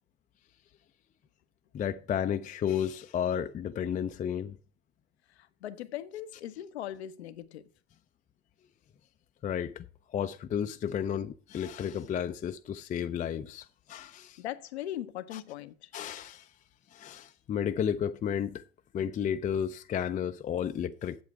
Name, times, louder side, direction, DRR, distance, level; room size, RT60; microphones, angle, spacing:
voice 1, 1.7-4.6 9.4-9.9 10.1-14.4 15.3-15.4 15.9-16.5 16.9-18.6 18.9-21.2, left 8 dB, 25° left, 0.5 m, -32 dB
voice 2, 5.4-7.7 14.4-15.9, left 12 dB, 75° left, 0.7 m, -39 dB
7.9 x 7.6 x 4.6 m
figure-of-eight pair, 65°, 33 cm